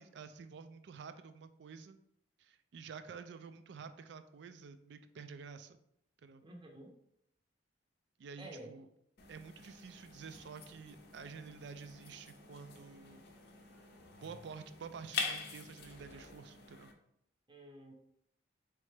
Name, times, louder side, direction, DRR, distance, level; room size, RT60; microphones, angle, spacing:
voice 1, 0.0-2.0 2.4-5.8 6.2-6.4 8.2-8.9 9.3-13.2 14.2-16.9, right 5 dB, 60° right, 11 dB, 0.3 m, -50 dB
voice 2, 6.4-6.9 8.4-8.7 17.5-17.9, right 1 dB, 25° right, 1 dB, 0.6 m, -50 dB
sound 1, 9.2-16.9, left 4 dB, 50° left, 0.6 m, -45 dB
3.7 x 3.2 x 3.3 m, 0.73 s
head